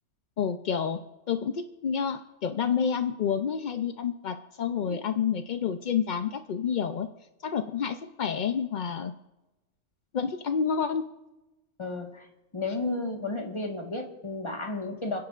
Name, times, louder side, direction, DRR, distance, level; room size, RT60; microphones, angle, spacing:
voice 1, 0.4-1.0 1.3-7.1 7.4-9.1 10.1-11.1, left 7 dB, 60° left, 7 dB, 0.5 m, -29 dB
voice 2, 11.8-12.3 12.5-15.2, left 2 dB, 20° left, 1 dB, 1.5 m, -33 dB
30.0 x 10.5 x 2.5 m, 1.0 s
omnidirectional pair, 1.4 m